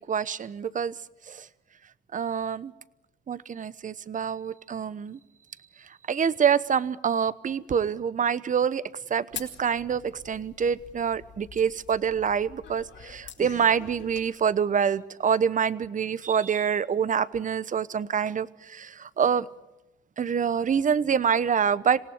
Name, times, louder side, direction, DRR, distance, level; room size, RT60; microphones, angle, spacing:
voice 1, 0.1-0.9 1.3-1.5 2.1-2.7 3.3-5.2 6.1-8.8 9.1-19.5 20.2-22.0, right 7 dB, 40° right, 17 dB, 1.0 m, -26 dB
sound 1, 9.3-14.3, left 7 dB, 65° left, 4.4 m, -45 dB
27.0 x 17.5 x 9.8 m, 0.97 s
cardioid pair, 90°, 20 cm